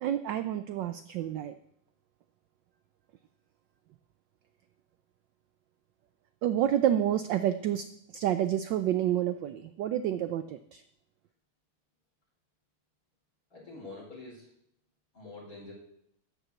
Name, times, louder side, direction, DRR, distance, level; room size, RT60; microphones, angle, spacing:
voice 1, 0.0-1.6 6.4-7.9 8.1-10.8, right 11 dB, 75° right, 11 dB, 1.1 m, -29 dB
voice 2, 13.5-14.5 15.1-15.7, left 3 dB, 40° left, -4 dB, 5.1 m, -45 dB
13.0 x 6.1 x 8.1 m, 0.74 s
omnidirectional pair, 2.4 m